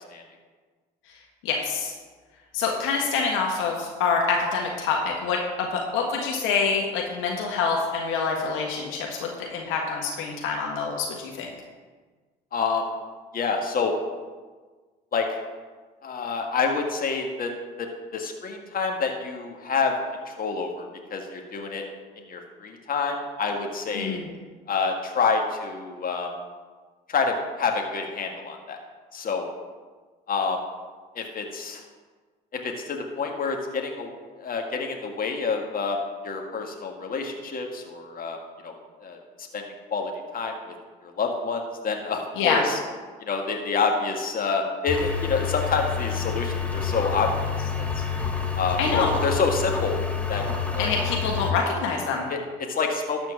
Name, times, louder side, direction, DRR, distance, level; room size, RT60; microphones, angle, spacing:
voice 1, 1.4-1.9 2.5-11.5 23.9-24.3 42.3-42.6 48.8-49.2 50.8-52.3, left 5 dB, 70° left, 0 dB, 1.6 m, -26 dB
voice 2, 12.5-12.8 13.3-13.9 15.1-15.4 16.0-17.5 17.8-17.9 18.1-19.9 20.3-20.9 21.1-21.8 22.3-24.2 24.7-26.3 27.1-28.8 29.1-29.5 30.3-30.6 31.2-31.8 32.6-34.1 34.4-36.0 36.2-38.4 38.6-38.7 39.0-39.2 39.5-39.6 39.9-40.5 41.2-42.8 43.3-48.0 48.6-50.0 50.3-50.4 50.7-50.9 52.3-53.2, left 4 dB, 45° left, 2 dB, 1.8 m, -27 dB
sound 1, 44.9-51.5, left 6 dB, 5° left, 1.3 m, -28 dB
12.5 x 4.4 x 7.2 m, 1.4 s
hypercardioid pair, 60°, 21 cm